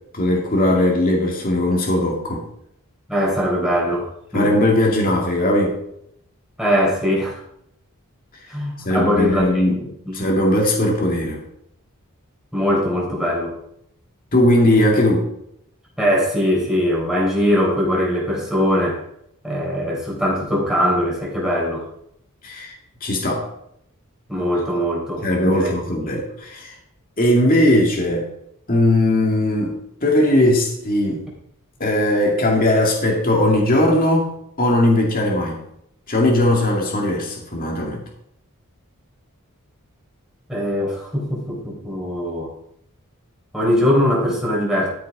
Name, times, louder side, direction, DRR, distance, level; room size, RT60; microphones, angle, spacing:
voice 1, 0.1-2.5 4.3-5.8 8.8-9.8 10.1-11.4 14.3-15.3 22.4-22.7 23.0-23.5 25.2-26.7 27.2-28.3 28.7-29.7 30.0-31.3 31.8-34.3 34.6-35.6 36.1-38.0, left 1 dB, 40° left, -2 dB, 2.3 m, -18 dB
voice 2, 3.1-4.5 6.6-7.4 8.5-10.3 12.5-13.5 16.0-19.0 19.4-21.9 24.3-25.7 40.5-42.5 43.5-44.9, equal, ahead, -3 dB, 3.9 m, -21 dB
13.0 x 6.8 x 4.9 m, 0.74 s
head